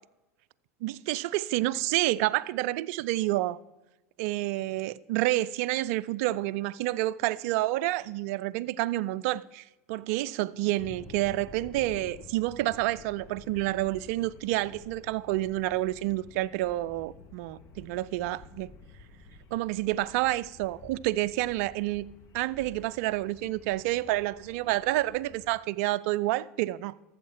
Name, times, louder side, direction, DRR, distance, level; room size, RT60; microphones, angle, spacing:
voice 1, 0.8-3.6 4.2-18.7 19.5-22.1 22.3-27.0, right 16 dB, 60° right, 0.4 m, -29 dB
sound 1, 10.8-25.6, left 3 dB, 35° left, 1.6 m, -51 dB
13.0 x 7.6 x 4.3 m
hypercardioid pair, 90°, 9 cm